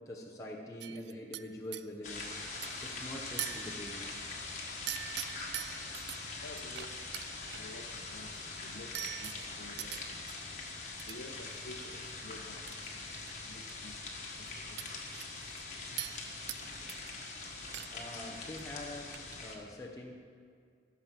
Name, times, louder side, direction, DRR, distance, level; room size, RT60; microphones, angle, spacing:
voice 1, 0.1-2.3 2.8-4.2 16.8-16.9 17.9-19.1 19.4-20.1, left 1 dB, 20° left, -3 dB, 1.0 m, -44 dB
sound 1, 0.8-1.8 2.6-2.9 3.4-4.1 4.9-6.2 6.6-7.6 8.9-10.3 11.0-11.2 11.5-11.9 12.7-12.8 13.1-13.7 14.0-14.1 14.8-15.6 16.0-16.6 16.9-17.3 17.6-18.1 18.4-18.6 19.0-19.3, right 13 dB, 75° right, 0.4 m, -42 dB
sound 2, 2.0-19.6, left 3 dB, 40° left, 1.6 m, -43 dB
voice 2, 6.4-6.9 7.6-8.3 8.6-10.3 11.1-12.8 13.3-14.0 14.4-15.0 15.9-16.0, left 2 dB, 85° left, 4 dB, 1.0 m, -50 dB
15.5 x 7.2 x 5.9 m, 2.2 s
head